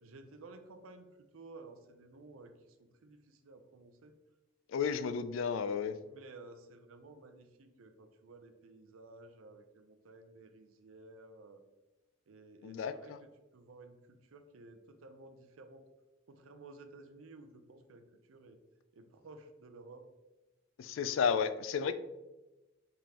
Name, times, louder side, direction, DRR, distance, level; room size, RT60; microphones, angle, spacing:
voice 1, 0.0-2.5 2.8-4.1 6.0-11.6 12.3-15.8 16.3-18.6 18.9-20.1, right 3 dB, 90° right, 7 dB, 0.5 m, -54 dB
voice 2, 4.7-6.0 12.6-13.2 20.8-21.9, left 6 dB, 70° left, 12 dB, 0.3 m, -32 dB
5.0 x 3.6 x 2.9 m, 1.1 s
head